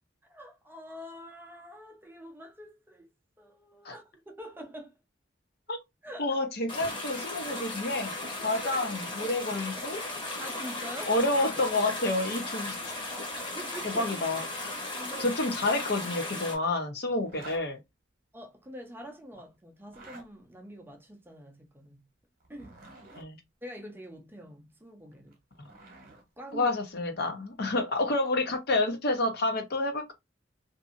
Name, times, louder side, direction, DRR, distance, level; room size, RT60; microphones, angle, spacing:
voice 1, 0.3-3.1 3.4-5.0 6.0-6.4 8.6-8.8 10.2-11.2 13.3-14.2 15.0-15.4 18.3-22.0 22.5-22.8 23.6-25.3 26.4-26.7, equal, 10° right, 0.5 m, -45 dB
voice 2, 6.2-8.1 8.4-10.0 11.1-12.8 13.9-14.4 15.2-17.8 23.2-23.4 26.5-30.1, left 2 dB, 55° left, 0.7 m, -29 dB
sound 1, 6.7-16.6, left 2 dB, 25° left, 1.0 m, -36 dB
Zipper (clothing), 17.2-17.6 19.8-20.3 22.4-23.3 25.1-26.2, right 2 dB, 50° right, 0.9 m, -49 dB
2.6 x 2.5 x 2.5 m
head